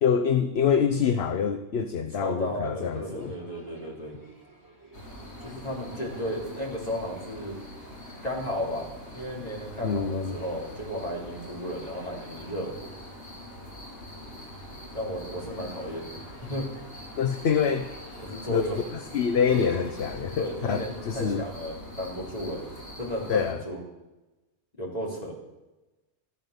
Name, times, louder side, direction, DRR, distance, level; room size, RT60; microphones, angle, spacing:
voice 1, 0.0-3.4 9.8-10.4 17.2-17.9 18.5-18.7 19.1-21.4 23.3-23.6, left 7 dB, 70° left, 9 dB, 1.1 m, -25 dB
voice 2, 2.1-4.2 5.4-7.6 8.2-12.7 14.9-16.7 18.2-18.7 20.4-22.6 23.0-23.8 24.8-25.4, equal, 35° left, -2 dB, 4.1 m, -34 dB
sound 1, 2.8-21.4, right 3 dB, 15° right, 3.5 m, -49 dB
sound 2, 4.9-23.5, left 1 dB, 85° left, 4.1 m, -44 dB
14.0 x 13.0 x 6.7 m, 1.1 s
omnidirectional pair, 1.1 m